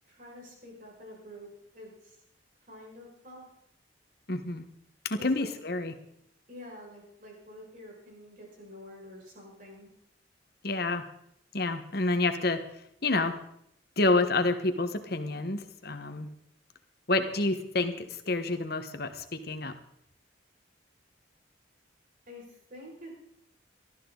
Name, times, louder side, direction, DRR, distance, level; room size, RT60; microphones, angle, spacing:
voice 1, 0.1-1.5 1.7-1.9 2.7-3.4 5.2-5.5 6.5-9.9 22.3-22.4 22.7-23.1, left 1 dB, 45° right, -2 dB, 6.0 m, -47 dB
voice 2, 4.3-4.6 5.0-5.9 10.6-11.0 11.5-12.6 13.0-13.4 14.0-16.3 17.1-19.7, left 2 dB, 50° left, 8 dB, 1.4 m, -28 dB
19.0 x 13.5 x 4.0 m, 0.74 s
head